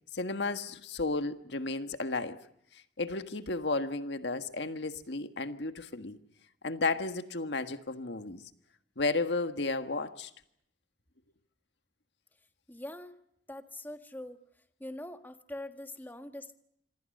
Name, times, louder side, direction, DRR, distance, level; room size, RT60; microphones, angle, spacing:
voice 1, 0.1-2.4 2.7-6.2 6.6-8.4 9.0-10.3, left 3 dB, 75° left, 1.6 m, -33 dB
voice 2, 12.7-13.2 13.5-14.4 14.8-16.6, left 1 dB, 10° left, 1.5 m, -43 dB
26.5 x 25.0 x 6.6 m
head